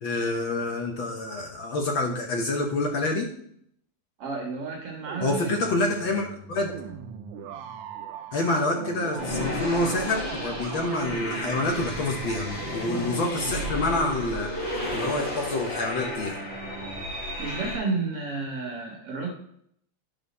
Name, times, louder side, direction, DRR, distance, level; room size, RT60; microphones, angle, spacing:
voice 1, 0.0-3.3 5.2-6.7 8.3-14.5 14.9-16.4, left 2 dB, 60° left, 2 dB, 1.3 m, -27 dB
voice 2, 4.2-5.8 17.4-19.3, right 3 dB, 60° right, 0 dB, 2.2 m, -31 dB
sound 1, 5.0-17.1, right 8 dB, 80° right, 1.5 m, -40 dB
sound 2, 9.2-17.8, left 1 dB, 80° left, 5.2 m, -33 dB
10.0 x 5.6 x 4.1 m, 0.69 s
omnidirectional pair, 3.3 m